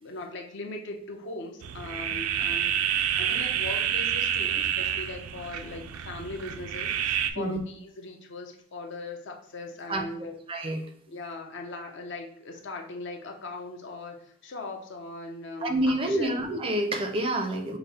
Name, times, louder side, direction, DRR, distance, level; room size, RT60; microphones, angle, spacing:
voice 1, 0.0-2.7 3.2-10.4 11.1-16.4, left 2 dB, 55° left, 2 dB, 0.6 m, -39 dB
sound 1, 1.6-7.3, right 9 dB, 90° right, 0.4 m, -28 dB
voice 2, 10.5-10.8 15.6-17.8, right 1 dB, 25° right, 5 dB, 0.4 m, -27 dB
5.3 x 2.0 x 4.0 m, 0.64 s
head